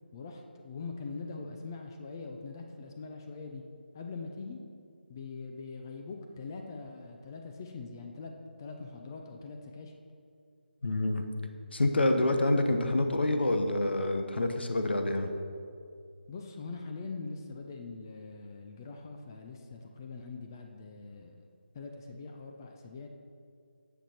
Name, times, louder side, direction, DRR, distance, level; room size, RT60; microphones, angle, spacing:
voice 1, 0.1-3.6 3.9-4.6 5.1-8.3 8.6-9.9 16.3-21.3 21.7-23.1, left 4 dB, 20° left, 3 dB, 0.5 m, -42 dB
voice 2, 10.8-11.2 11.7-15.3, left 2 dB, 70° left, 6 dB, 1.1 m, -27 dB
9.0 x 7.1 x 4.4 m, 2.3 s
figure-of-eight pair, 165°, 6 cm